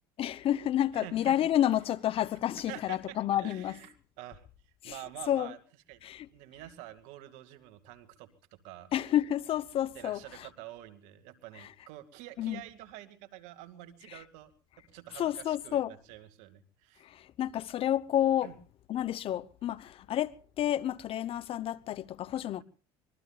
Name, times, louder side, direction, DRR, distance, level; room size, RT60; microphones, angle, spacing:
voice 1, 0.2-3.8 4.8-5.0 5.3-5.5 6.0-6.3 8.9-10.5 11.6-11.7 12.4-12.6 14.1-14.2 15.2-15.9 17.0-18.5 18.9-22.6, left 11 dB, 50° left, 0.9 m, -30 dB
voice 2, 0.9-1.4 2.6-4.5 4.8-5.6 5.9-6.0 6.3-8.9 9.9-14.5 14.9-17.1 18.4-18.5, right 14 dB, 75° right, 2.2 m, -47 dB
25.0 x 22.0 x 2.4 m
supercardioid pair, 95°, 12 cm